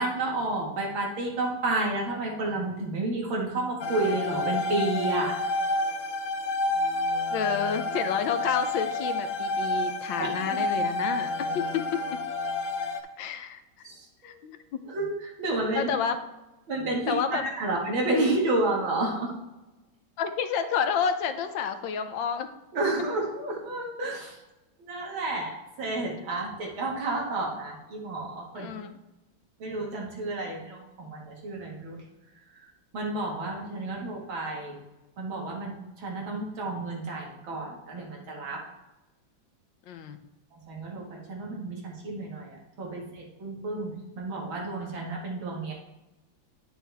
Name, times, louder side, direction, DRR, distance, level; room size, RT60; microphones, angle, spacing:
voice 1, 0.0-5.4 10.2-10.6 13.8-14.3 14.9-15.9 16.7-19.3 22.7-24.4 24.8-28.7 29.6-32.0 32.9-34.8 35.2-38.6 40.5-45.7, right 2 dB, 85° right, -2 dB, 2.6 m, -31 dB
sound 1, 3.8-13.0, left 2 dB, 55° left, 0.9 m, -29 dB
voice 2, 7.3-12.0 13.2-13.6 14.2-14.6 15.8-16.2 17.1-17.4 20.2-22.5 28.6-28.9 39.9-40.2, left 7 dB, 75° left, 8 dB, 1.4 m, -29 dB
10.5 x 6.4 x 3.4 m, 1.0 s
omnidirectional pair, 2.1 m